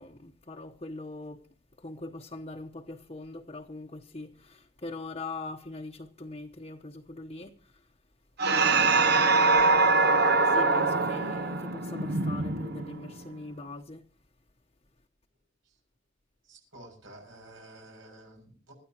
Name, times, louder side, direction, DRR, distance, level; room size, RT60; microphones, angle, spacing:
voice 1, 0.0-1.5 1.8-7.9 8.5-9.6 10.4-14.0, left 2 dB, 30° left, 1.0 m, -42 dB
sound 1, 8.4-13.2, right 3 dB, 55° right, 0.8 m, -23 dB
voice 2, 16.4-18.7, right 1 dB, 85° right, 7.0 m, -51 dB
25.5 x 13.5 x 3.0 m
head